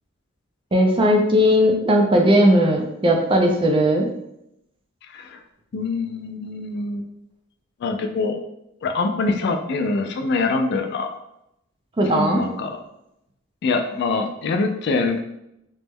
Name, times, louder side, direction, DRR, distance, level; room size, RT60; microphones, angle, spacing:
voice 1, 0.7-4.1 12.0-12.4, equal, 25° right, 2 dB, 0.4 m, -17 dB
voice 2, 5.7-7.1 7.8-8.4 8.8-11.1 12.1-12.8 13.6-15.2, left 3 dB, 55° left, 5 dB, 0.3 m, -24 dB
3.0 x 2.1 x 3.4 m, 0.82 s
head